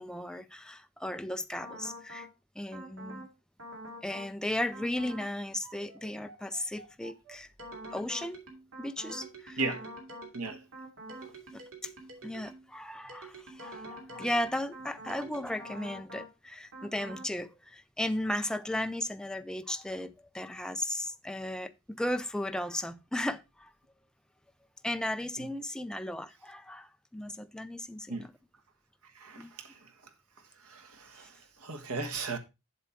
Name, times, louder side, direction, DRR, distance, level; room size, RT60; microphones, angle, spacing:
voice 1, 0.0-2.3 2.6-3.3 4.0-7.5 7.9-8.4 8.8-9.6 11.5-11.6 12.2-23.7 24.8-28.3 29.4-29.5, left 1 dB, 5° left, 0.4 m, -35 dB
sound 1, 1.6-2.3 2.7-3.3 3.6-4.3 4.7-5.3 5.6-12.7 13.1-16.3 16.7-17.3, right 1 dB, 65° right, 2.7 m, -46 dB
voice 2, 29.1-29.8 30.6-32.4, right 3 dB, 80° right, 1.4 m, -36 dB
7.7 x 6.9 x 4.5 m
head